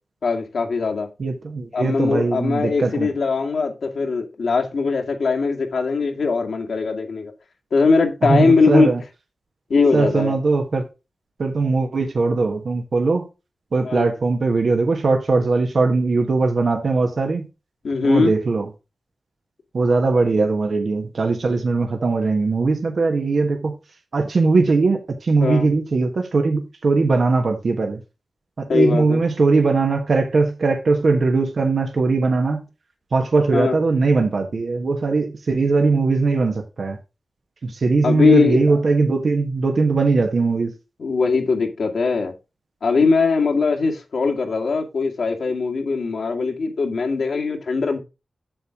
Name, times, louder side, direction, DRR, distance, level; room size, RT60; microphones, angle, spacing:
voice 1, 0.2-1.1 1.7-7.3 7.7-8.9 9.7-10.4 13.8-14.1 17.8-18.4 25.4-25.7 28.7-29.2 33.5-33.8 38.0-38.6 41.0-42.3 42.8-48.0, left 4 dB, 75° left, 2.0 m, -20 dB
voice 2, 1.2-3.1 8.2-9.0 9.9-10.8 11.4-13.3 13.7-17.5 18.0-18.7 19.7-23.7 24.1-28.0 28.6-32.6 33.1-37.0 37.6-40.7, right 3 dB, 65° right, 1.4 m, -20 dB
7.7 x 7.2 x 3.7 m
wide cardioid pair, 75°, 0 cm